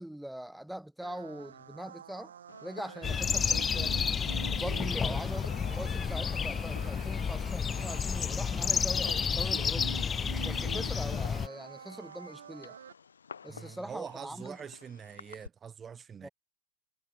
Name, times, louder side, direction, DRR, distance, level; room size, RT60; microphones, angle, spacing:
voice 1, 0.0-2.3 2.6-4.0 4.5-10.0 10.4-12.8 13.4-14.6 16.2-16.3, right 1 dB, ahead, 2.3 m, -42 dB
sound 1, 1.0-12.9, right 8 dB, 75° right, 2.3 m, -47 dB
Fireworks, 2.5-15.5, left 6 dB, 80° left, 4.0 m, -53 dB
sound 2, 3.0-11.5, left 6 dB, 20° left, 0.7 m, -31 dB
voice 2, 13.5-16.3, right 7 dB, 20° right, 1.0 m, -44 dB
hypercardioid pair, 100°, 0 cm